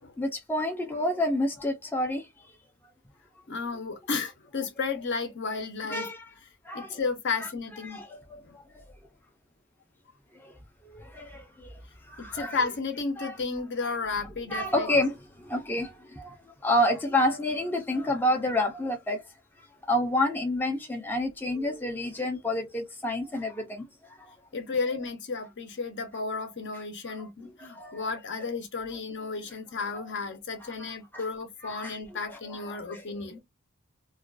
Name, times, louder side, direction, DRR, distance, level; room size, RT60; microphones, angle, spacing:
voice 1, 0.2-2.5 5.9-6.3 6.6-7.0 7.4-7.5 7.8-8.8 10.4-10.5 10.9-11.7 12.1-12.6 13.2-13.4 14.5-19.2 19.9-24.3 27.1-27.3 27.6-28.0 30.6-30.7 31.1-31.2 31.6-32.0 32.3-33.0, left 1 dB, 10° left, 0.4 m, -29 dB
voice 2, 3.5-6.1 6.7-8.0 8.4-8.5 12.2-14.9 24.5-33.4, left 4 dB, 55° left, 0.7 m, -33 dB
2.4 x 2.2 x 2.4 m
head